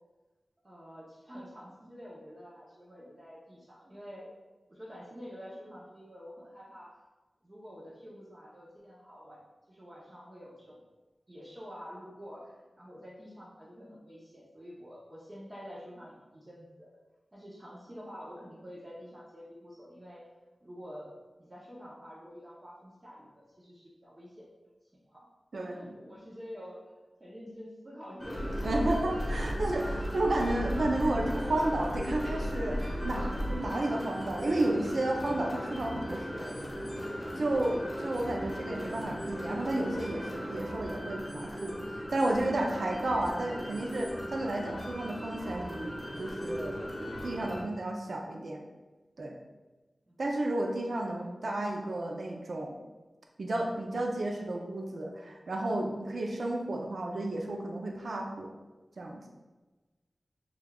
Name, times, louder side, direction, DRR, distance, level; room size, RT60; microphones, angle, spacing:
voice 1, 0.6-4.4 4.7-6.9 7.4-9.4 9.7-10.8 11.3-16.9 17.3-20.3 20.6-24.5 24.9-25.3 25.7-26.8 27.2-28.8 50.1-50.2 51.1-51.3, equal, 35° right, -5 dB, 0.7 m, -48 dB
voice 2, 25.5-25.9 28.6-36.6 37.4-46.8 47.2-48.6 49.2-49.3 50.2-52.8 53.4-58.6 59.0-59.2, right 1 dB, 75° right, 1 dB, 0.4 m, -32 dB
sound 1, 28.2-47.6, equal, 10° left, 1.1 m, -38 dB
sound 2, 28.3-33.6, equal, 85° left, 0.5 m, -35 dB
5.0 x 2.3 x 2.3 m, 1.2 s
wide cardioid pair, 55°, 0 cm